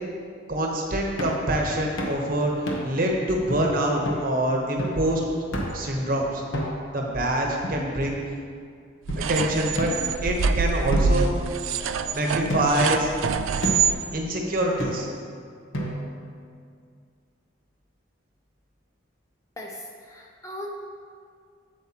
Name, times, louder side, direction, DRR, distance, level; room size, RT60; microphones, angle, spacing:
voice 1, 0.5-5.2 5.7-6.4 6.9-8.2 9.2-9.9 10.2-11.3 12.1-13.1 14.1-15.1, right 1 dB, 45° right, 0 dB, 0.9 m, -25 dB
sound 1, 1.2-1.5 2.0-2.2 2.7-3.0 3.5-3.6 4.1-4.3 4.8-5.1 5.5-5.9 6.5-7.0 7.6-8.4 9.1-9.2 9.8-10.5 10.9-12.0 12.5-12.9 13.6-14.0 14.8-15.3 15.7-16.3, equal, 80° left, 1.1 m, -31 dB
sound 2, 9.1-14.0, right 5 dB, 75° right, 0.3 m, -25 dB
voice 2, 19.6-20.7, left 1 dB, 15° left, 0 dB, 0.5 m, -38 dB
8.0 x 7.9 x 2.9 m, 2.2 s
head